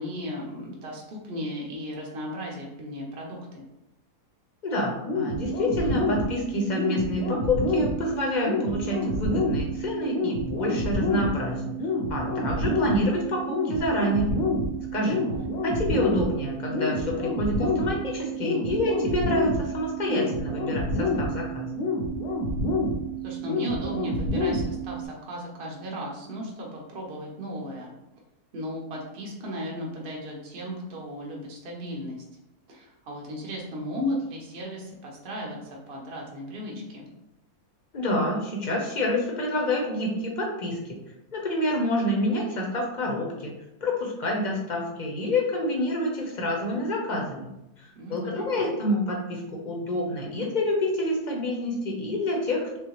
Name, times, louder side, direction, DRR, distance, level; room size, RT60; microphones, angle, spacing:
voice 1, 0.0-3.6 15.2-15.5 23.2-27.9 28.5-32.2 32.7-37.1 48.0-48.7, equal, 45° right, -2 dB, 0.9 m, -35 dB
voice 2, 4.6-11.7 12.1-14.3 14.9-15.2 15.6-21.7 37.9-41.0 41.3-43.5 43.8-47.5 47.8-52.8, left 1 dB, 40° left, -1 dB, 0.7 m, -27 dB
sound 1, 5.1-25.1, left 1 dB, 85° left, 1.3 m, -28 dB
3.6 x 3.5 x 3.0 m, 0.92 s
omnidirectional pair, 1.6 m